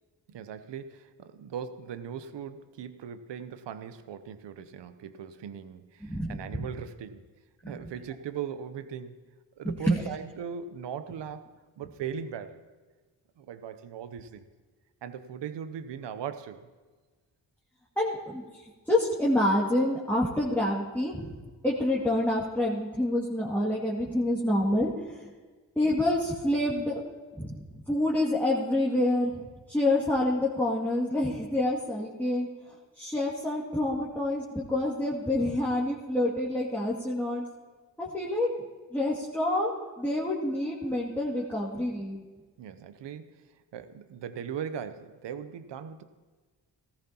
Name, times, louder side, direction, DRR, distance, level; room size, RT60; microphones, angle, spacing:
voice 1, 0.3-7.2 7.6-9.2 9.6-11.5 11.8-12.6 13.4-14.5 15.0-16.7 42.6-43.4 43.7-46.0, right 8 dB, 75° right, 11 dB, 0.8 m, -39 dB
voice 2, 6.0-6.6 7.6-7.9 9.6-10.0 18.0-21.3 21.6-25.3 25.8-27.0 27.4-29.4 29.7-32.5 33.0-37.4 38.0-38.5 38.9-42.2, left 1 dB, 5° left, -6 dB, 2.2 m, -27 dB
14.5 x 14.0 x 2.9 m, 1.4 s
supercardioid pair, 40°, 43 cm